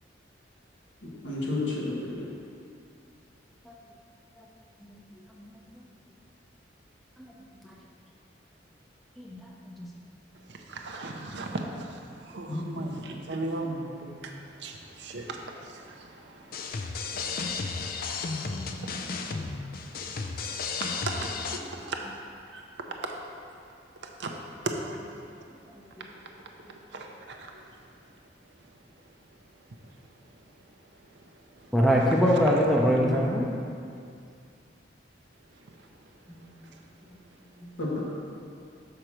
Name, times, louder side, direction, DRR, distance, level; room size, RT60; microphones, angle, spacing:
voice 1, 1.2-2.2 12.5-12.6 32.7-33.1 37.8-38.0, left 2 dB, 85° left, -5 dB, 1.7 m, -31 dB
voice 2, 9.2-9.9 21.6-21.7 26.0-26.1 31.7-33.5 36.3-36.5 37.6-37.7, equal, ahead, -3 dB, 0.6 m, -24 dB
voice 3, 10.5-17.2 17.5-22.0 22.5-22.6 23.0-23.1 24.0-24.3 24.6-24.7 26.2-26.3 26.9-27.6 31.1-31.2 31.6-31.7 36.7-36.8, right 2 dB, 65° right, 2 dB, 0.7 m, -39 dB
sound 1, 16.5-21.6, left 4 dB, 55° left, 0.5 m, -33 dB
6.7 x 4.4 x 6.1 m, 2.4 s
head